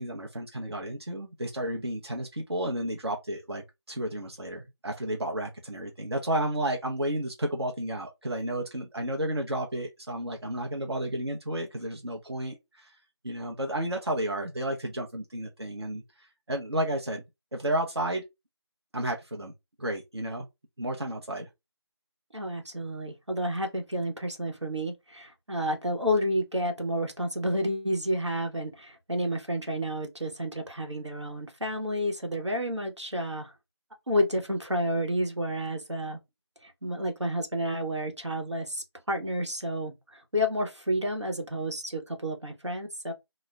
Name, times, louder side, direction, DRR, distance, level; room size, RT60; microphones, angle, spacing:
voice 1, 0.0-12.9 13.2-17.2 17.5-18.2 18.9-19.5 19.8-20.5 20.8-21.5, right 1 dB, 65° right, 0.6 m, -32 dB
voice 2, 22.3-33.5 34.1-36.2 36.6-43.1, equal, 90° right, 0.9 m, -30 dB
2.3 x 2.0 x 3.3 m
figure-of-eight pair, 170°, 15 cm